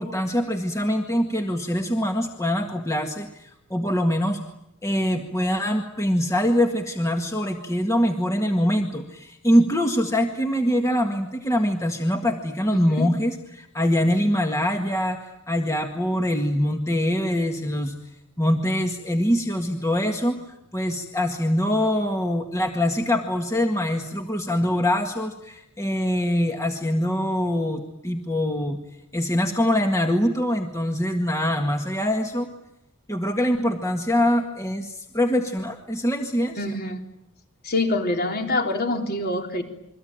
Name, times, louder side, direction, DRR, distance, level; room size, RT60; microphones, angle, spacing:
voice 1, 0.0-4.4 4.8-15.2 15.5-17.9 18.4-28.8 29.1-32.5 33.1-36.6, equal, 15° left, 4 dB, 1.8 m, -24 dB
voice 2, 12.7-13.1 36.6-37.0 37.6-39.6, left 2 dB, 45° left, 3 dB, 4.0 m, -25 dB
28.5 x 23.0 x 9.0 m, 0.82 s
head